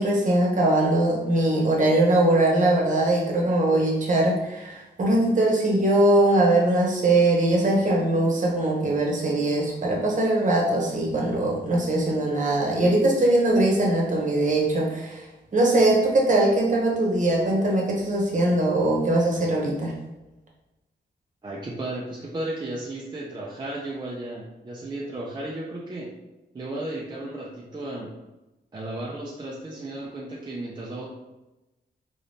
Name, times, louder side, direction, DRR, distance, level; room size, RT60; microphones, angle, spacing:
voice 1, 0.0-15.2 15.5-19.9, right 1 dB, 45° right, -2 dB, 1.0 m, -21 dB
voice 2, 21.4-26.1 26.5-28.1 28.7-31.1, right 1 dB, 25° right, -4 dB, 0.5 m, -34 dB
3.9 x 3.5 x 2.7 m, 1.0 s
wide cardioid pair, 165°, 18 cm